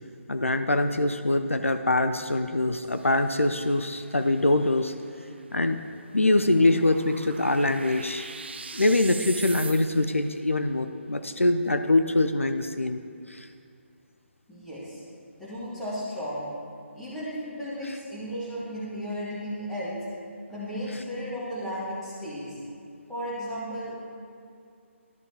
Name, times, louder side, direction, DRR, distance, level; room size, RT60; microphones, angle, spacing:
voice 1, 0.3-4.9 5.5-5.8 6.1-8.3 8.7-13.0 13.3-13.5, left 2 dB, 80° left, 8 dB, 0.4 m, -24 dB
sound 1, 2.8-10.3, right 4 dB, 55° right, 0.4 m, -43 dB
voice 2, 14.5-15.0 15.4-16.5 16.9-20.0 20.5-22.6 23.1-24.0, equal, 5° left, -11 dB, 2.0 m, -34 dB
13.0 x 5.4 x 2.9 m, 2.4 s
figure-of-eight pair, 145°, 7 cm